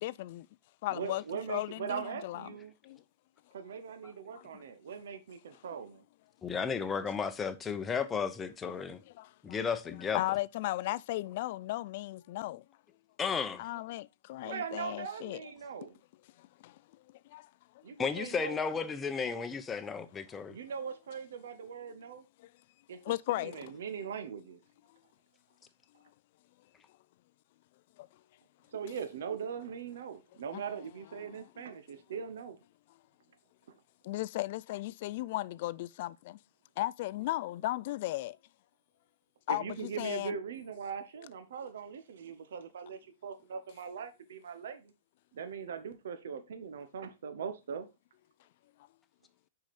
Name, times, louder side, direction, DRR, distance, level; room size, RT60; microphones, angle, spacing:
voice 1, 0.0-0.4 0.8-2.6 2.8-3.0 4.3-4.5 9.2-9.6 9.9-12.6 13.6-15.5 16.4-16.8 17.3-17.5 22.4-22.5 23.1-23.7 28.0-28.1 30.5-30.6 31.3-31.4 34.0-36.4 36.8-38.4 39.5-40.3, left 16 dB, 55° left, 0.3 m, -36 dB
voice 2, 0.9-2.7 3.5-6.0 14.4-16.0 17.8-18.6 20.5-22.2 22.9-24.6 28.7-32.6 39.5-44.9 45.3-47.9, right 6 dB, 75° right, 0.9 m, -40 dB
voice 3, 6.4-9.0 9.4-10.2 13.2-13.6 18.0-20.5, left 6 dB, 15° left, 0.8 m, -33 dB
6.2 x 4.9 x 4.2 m
hypercardioid pair, 130°, 0 cm